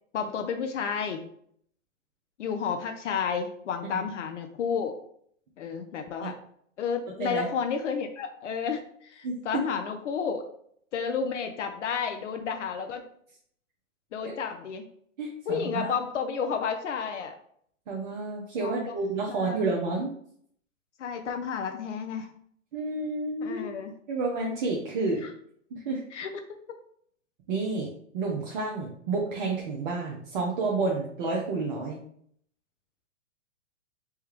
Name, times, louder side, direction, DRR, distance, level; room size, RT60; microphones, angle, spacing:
voice 1, 0.1-1.3 2.4-5.0 5.6-6.3 6.8-10.4 10.9-13.1 14.1-14.8 15.5-17.3 18.6-18.9 19.3-19.7 21.0-22.3 23.4-23.9 25.2-25.3 26.1-26.3, left 6 dB, 65° left, 6 dB, 0.5 m, -31 dB
voice 2, 9.2-9.6 14.2-14.3 15.2-15.9 17.9-20.1 22.7-23.6 24.1-25.2 25.7-26.0 27.5-32.0, right 3 dB, 40° right, -2 dB, 0.6 m, -30 dB
3.3 x 2.2 x 3.1 m, 0.65 s
hypercardioid pair, 120°, 39 cm